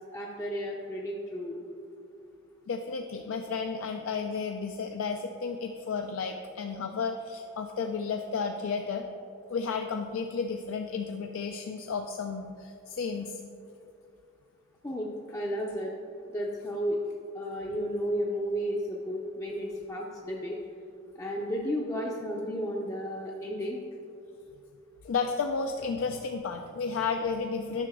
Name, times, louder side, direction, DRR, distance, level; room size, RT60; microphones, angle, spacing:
voice 1, 0.1-1.6 14.8-15.9 16.3-17.0 17.3-20.6 21.2-23.8, equal, 15° left, -3 dB, 0.5 m, -33 dB
voice 2, 2.7-9.0 9.5-13.4 25.0-27.9, left 5 dB, 75° left, 5 dB, 0.4 m, -32 dB
9.7 x 6.0 x 3.6 m, 2.6 s
head